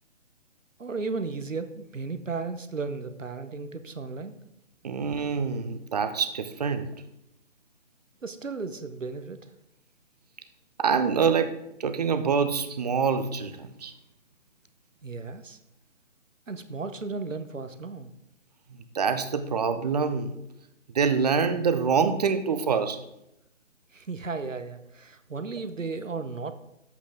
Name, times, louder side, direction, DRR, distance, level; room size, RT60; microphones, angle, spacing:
voice 1, 0.8-4.4 8.2-9.4 15.0-15.6 16.5-18.1 23.9-26.5, right 4 dB, 90° right, 10 dB, 1.0 m, -35 dB
voice 2, 4.8-6.9 10.8-13.9 18.9-20.3 20.9-23.0, right 6 dB, 35° right, 10 dB, 0.7 m, -25 dB
10.0 x 8.2 x 3.6 m, 0.83 s
figure-of-eight pair, 145°, 37 cm